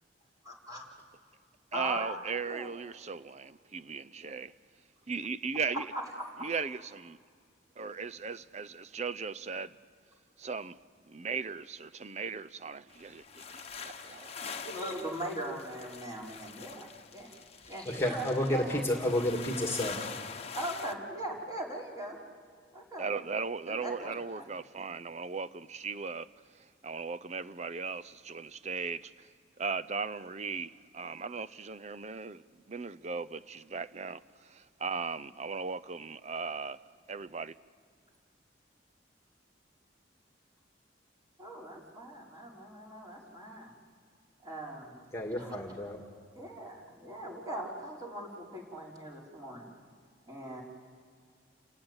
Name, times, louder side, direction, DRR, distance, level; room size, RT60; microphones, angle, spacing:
voice 1, 0.4-0.8 1.7-2.7 6.2-6.5 14.5-18.8 20.5-22.2 22.7-23.1 23.7-24.4 41.4-43.7 44.4-45.0 45.4-45.6 46.3-49.7 50.3-50.6, right 1 dB, 20° right, 4.8 m, -40 dB
voice 2, 1.7-4.5 5.1-5.9 6.4-7.2 7.8-9.8 10.4-10.8 11.0-14.5 23.0-29.3 29.6-37.6, right 5 dB, 35° right, 0.6 m, -38 dB
sound 1, 12.9-20.9, left 6 dB, 35° left, 1.2 m, -44 dB
voice 3, 17.9-20.1 45.1-46.0, left 1 dB, 15° left, 2.1 m, -31 dB
29.5 x 16.5 x 9.9 m
head